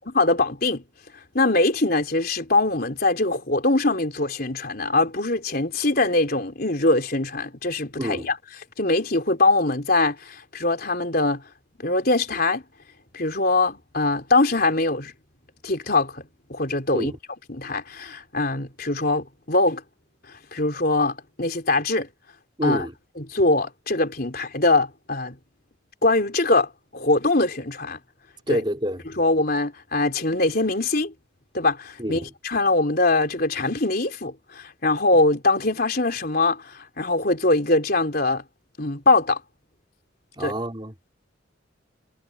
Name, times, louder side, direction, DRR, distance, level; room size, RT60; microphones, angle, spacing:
voice 1, 0.1-0.8 1.3-8.4 8.8-11.4 11.8-12.6 13.1-15.1 15.6-16.2 16.5-17.1 17.5-19.8 20.3-22.1 22.6-22.8 23.2-25.4 26.0-28.0 28.5-28.6 29.2-31.1 31.5-38.4 38.8-39.4 40.4-40.5, left 2 dB, 50° left, 4.0 m, -22 dB
voice 2, 8.0-8.3 16.9-17.2 22.6-22.9 28.5-29.0 32.0-32.3 40.4-40.9, equal, 25° right, 4.1 m, -27 dB
head